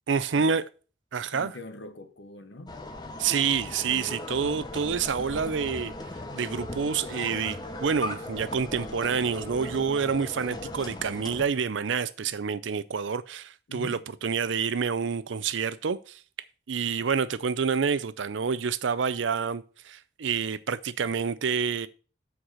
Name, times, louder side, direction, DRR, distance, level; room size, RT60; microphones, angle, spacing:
voice 1, 0.1-0.6 1.1-1.5 3.2-5.9 6.3-16.2 16.7-21.9, right 6 dB, 85° right, 0.5 m, -28 dB
voice 2, 1.3-2.7 13.7-14.1, left 2 dB, 75° left, 1.0 m, -42 dB
sound 1, 2.7-11.4, left 1 dB, 20° left, 0.8 m, -38 dB
6.4 x 4.7 x 6.1 m
head